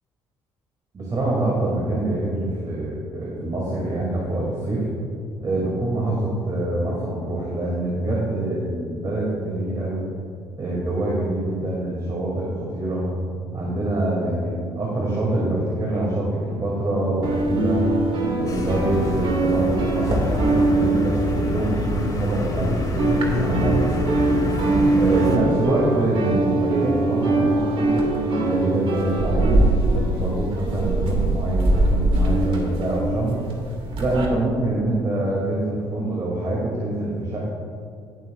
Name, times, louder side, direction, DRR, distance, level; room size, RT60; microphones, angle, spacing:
voice 1, 0.9-4.8 5.4-10.0 10.6-13.1 13.5-17.9 18.4-24.2 24.9-33.4 34.0-37.5, right 1 dB, 35° right, -5 dB, 2.6 m, -25 dB
sound 1, 17.2-22.6 22.8-34.3, right 2 dB, 55° right, 2.2 m, -22 dB
sound 2, 18.5-25.4, left 1 dB, 35° left, 2.5 m, -26 dB
18.5 x 7.7 x 2.5 m, 2.4 s
supercardioid pair, 70°, 11 cm